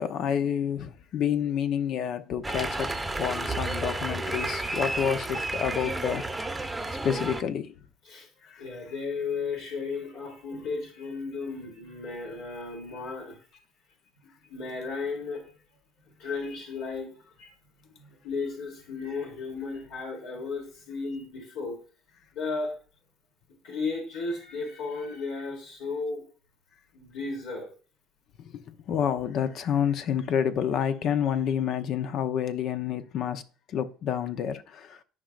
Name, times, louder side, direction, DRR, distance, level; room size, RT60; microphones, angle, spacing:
voice 1, 0.0-6.2 7.0-7.7 8.5-8.6 28.4-33.4 33.7-35.0, left 8 dB, 55° left, 0.9 m, -29 dB
sound 1, 2.4-7.4, right 2 dB, 10° right, 0.9 m, -31 dB
voice 2, 8.6-13.4 14.5-15.4 16.2-17.1 17.4-17.5 18.0-21.8 22.3-22.7 23.6-26.2 26.9-27.7, left 4 dB, 75° left, 3.3 m, -34 dB
13.5 x 5.2 x 2.5 m
supercardioid pair, 100°, 0 cm